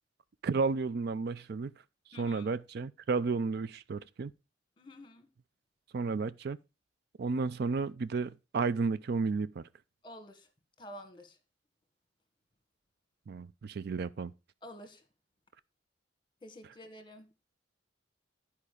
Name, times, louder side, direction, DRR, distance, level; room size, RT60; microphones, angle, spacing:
voice 1, 0.4-1.7 2.2-4.3 5.9-6.6 7.2-9.6 13.3-14.3, right 4 dB, 60° right, 0.4 m, -32 dB
voice 2, 2.1-2.5 4.8-5.3 10.0-10.5 10.8-11.4 14.6-15.0 16.4-17.3, equal, 25° left, 1.5 m, -49 dB
11.0 x 4.9 x 5.0 m
head